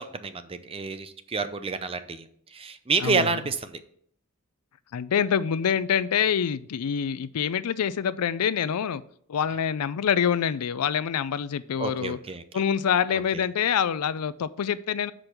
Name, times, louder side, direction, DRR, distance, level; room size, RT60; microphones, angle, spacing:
voice 1, 0.0-3.8 11.8-12.6 13.1-13.4, right 4 dB, 25° right, 10 dB, 0.5 m, -29 dB
voice 2, 3.0-3.4 4.9-9.0 9.3-12.2 12.5-15.1, left 8 dB, 90° left, 16 dB, 0.4 m, -26 dB
6.2 x 5.1 x 5.8 m, 0.63 s
head